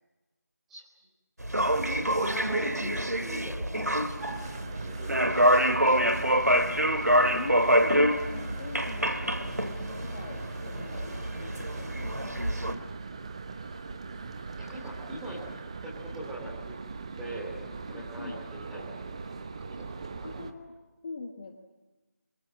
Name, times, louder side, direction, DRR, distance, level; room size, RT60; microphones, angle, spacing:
sound 1, 1.4-12.7, equal, 80° right, 2.5 m, -26 dB
voice 1, 1.9-4.5 4.8-5.9 6.1-6.4 13.4-13.6 14.6-15.4 15.8-16.7 17.2-17.6 17.9-20.3, right 1 dB, 5° right, -5 dB, 3.2 m, -42 dB
sound 2, 4.2-20.5, right 4 dB, 20° right, 1.0 m, -41 dB
voice 2, 7.4-12.9 14.8-15.0 17.9-18.4 20.2-20.7 21.0-21.6, left 3 dB, 25° left, 3 dB, 1.5 m, -43 dB
29.5 x 23.5 x 7.6 m, 1.1 s
figure-of-eight pair, 165°, 9 cm